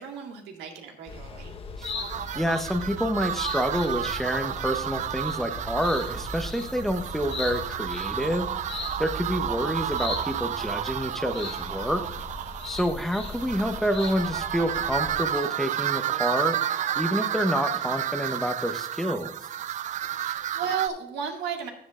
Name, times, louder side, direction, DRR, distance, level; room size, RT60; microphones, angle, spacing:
voice 1, 0.0-1.5 20.1-21.7, right 7 dB, 80° right, 2 dB, 1.9 m, -34 dB
sound 1, 1.1-15.3, left 4 dB, 35° left, 1.0 m, -39 dB
sound 2, 1.8-20.9, right 10 dB, 45° right, 0.4 m, -31 dB
sound 3, 2.2-13.0, right 3 dB, 25° right, 0.9 m, -44 dB
voice 2, 2.3-8.5 9.0-12.0 12.7-16.6 16.9-19.4, equal, ahead, 7 dB, 0.8 m, -28 dB
13.0 x 7.9 x 2.4 m, 0.81 s
cardioid pair, 110°, 17 cm